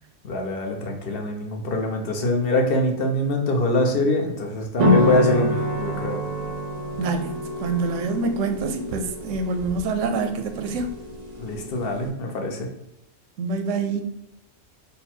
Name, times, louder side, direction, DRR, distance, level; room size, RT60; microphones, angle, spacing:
voice 1, 0.2-6.2 11.4-12.7, left 1 dB, 55° left, 2 dB, 0.9 m, -24 dB
sound 1, 4.8-12.1, left 1 dB, 55° right, 0.4 m, -26 dB
voice 2, 7.0-10.9 13.4-14.0, right 4 dB, 85° right, 7 dB, 0.9 m, -26 dB
4.0 x 2.2 x 4.2 m, 0.87 s
omnidirectional pair, 1.3 m